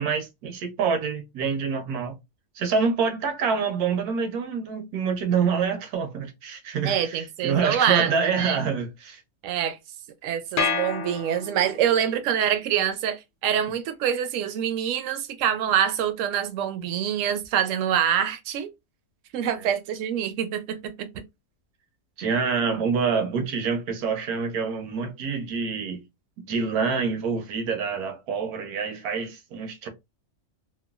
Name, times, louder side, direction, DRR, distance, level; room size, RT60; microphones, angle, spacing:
voice 1, 0.0-2.2 2.6-9.2 19.4-19.7 22.2-26.0 26.5-29.9, right 5 dB, 85° right, 1.2 m, -26 dB
voice 2, 6.8-8.6 9.4-9.8 10.2-18.7 19.3-21.2, right 9 dB, 70° right, 0.8 m, -25 dB
sound 1, 10.6-11.9, left 5 dB, 70° left, 0.6 m, -28 dB
3.0 x 2.3 x 2.3 m
omnidirectional pair, 1.6 m